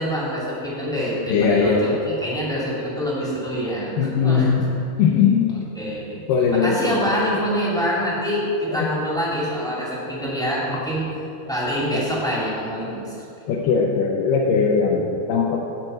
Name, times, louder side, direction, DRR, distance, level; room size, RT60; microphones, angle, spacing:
voice 1, 0.0-4.6 5.5-6.2 6.5-11.1 11.5-13.3, equal, ahead, -7 dB, 1.1 m, -25 dB
voice 2, 1.3-2.0 4.0-4.7 5.0-5.6 6.3-7.0 13.5-15.6, left 5 dB, 75° left, -2 dB, 2.4 m, -19 dB
12.0 x 4.3 x 7.8 m, 2.6 s
omnidirectional pair, 4.2 m